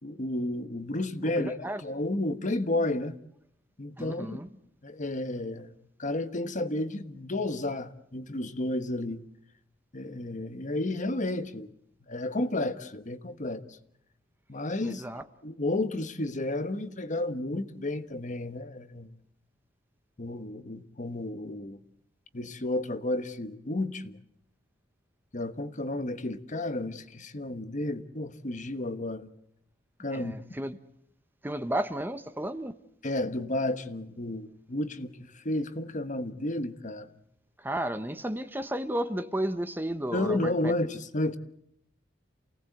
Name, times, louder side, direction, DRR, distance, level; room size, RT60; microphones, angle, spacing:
voice 1, 0.0-3.1 3.8-4.4 4.8-9.2 9.9-11.7 12.1-13.8 14.5-15.0 15.4-19.1 20.2-21.8 22.3-24.2 25.3-29.3 30.0-30.4 33.0-37.1 40.1-41.4, left 1 dB, 40° left, 1.3 m, -32 dB
voice 2, 1.2-1.8 4.0-4.5 14.8-15.2 30.1-30.8 31.4-32.8 37.6-40.7, right 1 dB, 10° right, 0.9 m, -33 dB
29.0 x 18.0 x 7.8 m
head